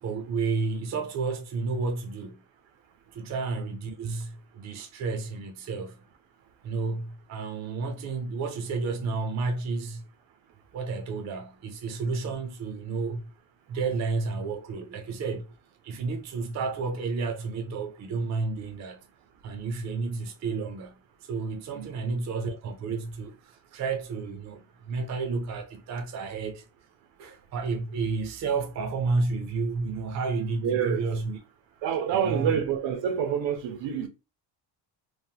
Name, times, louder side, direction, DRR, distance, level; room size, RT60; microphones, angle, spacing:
voice 1, 0.0-2.4 3.1-6.0 6.6-10.0 10.7-13.3 13.7-15.5 15.8-19.0 19.4-21.0 21.3-26.6 27.2-31.4 32.1-32.6, right 4 dB, 40° right, 0.5 m, -31 dB
voice 2, 30.6-31.0 31.8-34.1, right 8 dB, 80° right, 0.7 m, -27 dB
3.2 x 2.0 x 2.7 m
cardioid pair, 165°, 44 cm